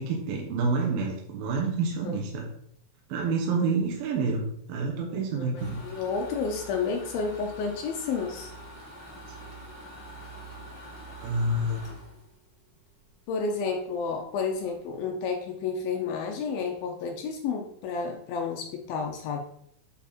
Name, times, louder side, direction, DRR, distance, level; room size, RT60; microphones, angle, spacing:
voice 1, 0.0-2.5 3.1-5.8 11.2-11.8, right 3 dB, 70° right, -1 dB, 2.8 m, -28 dB
voice 2, 5.4-8.5 13.3-19.4, left 5 dB, 75° left, 3 dB, 2.3 m, -31 dB
sound 1, 5.6-13.3 13.7-13.8 14.2-14.3 14.5-14.9, right 1 dB, 45° left, 0.3 m, -45 dB
8.5 x 4.6 x 4.2 m, 0.69 s
omnidirectional pair, 4.8 m